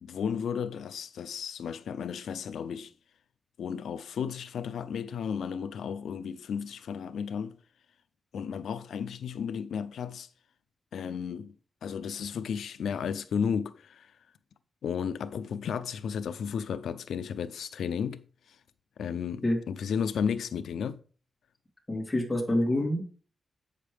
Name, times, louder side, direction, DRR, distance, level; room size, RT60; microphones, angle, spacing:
voice 1, 0.0-2.9 3.6-7.6 8.3-10.3 10.9-11.5 11.8-14.1 14.8-18.2 19.0-21.0, left 7 dB, 90° left, 0.5 m, -33 dB
voice 2, 21.9-23.0, left 1 dB, 15° left, 2.6 m, -27 dB
8.3 x 6.5 x 3.4 m
wide cardioid pair, 125°, 0 cm